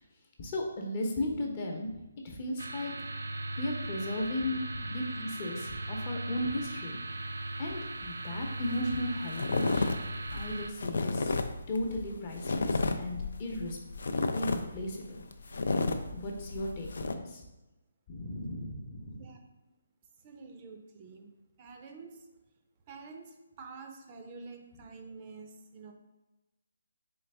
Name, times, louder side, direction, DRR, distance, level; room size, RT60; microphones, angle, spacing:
voice 1, 0.4-2.0 2.2-3.1 3.6-7.0 7.6-9.9 10.3-11.4 11.7-13.8 14.3-15.2 16.1-17.4 18.1-19.2, left 1 dB, 35° left, 1 dB, 0.7 m, -36 dB
sound 1, 2.6-10.7, right 2 dB, 85° right, 0.4 m, -38 dB
sound 2, 8.4-8.5 8.7-9.0 9.3-17.1, left 3 dB, 75° left, 0.4 m, -32 dB
voice 2, 20.2-21.3 21.6-22.3 22.9-25.9, right 4 dB, 30° right, 4 dB, 0.5 m, -48 dB
3.9 x 3.4 x 3.3 m, 1.0 s
hypercardioid pair, 160°, 0 cm